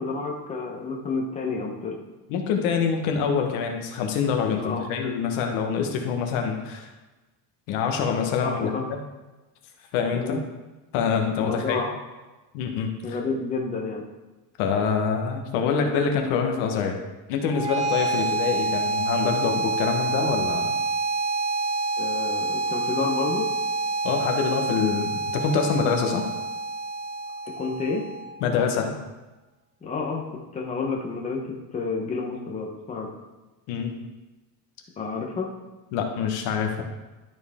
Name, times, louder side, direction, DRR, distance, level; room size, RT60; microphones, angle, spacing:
voice 1, 0.0-2.0 4.5-4.9 8.4-8.8 10.1-10.4 11.3-11.9 13.0-14.0 22.0-23.5 27.4-28.1 29.8-33.1 35.0-35.5, left 4 dB, 15° left, 0 dB, 0.8 m, -30 dB
voice 2, 2.3-6.9 7.7-9.0 9.9-10.4 10.9-11.9 12.5-13.2 14.6-16.9 17.3-20.8 24.0-26.3 28.4-28.9 33.7-33.9 35.9-36.8, left 6 dB, 80° left, 3 dB, 1.4 m, -25 dB
sound 1, 17.5-28.5, right 3 dB, 15° right, 0.5 m, -27 dB
12.0 x 4.5 x 3.6 m, 1.1 s
cardioid pair, 170°, 45 cm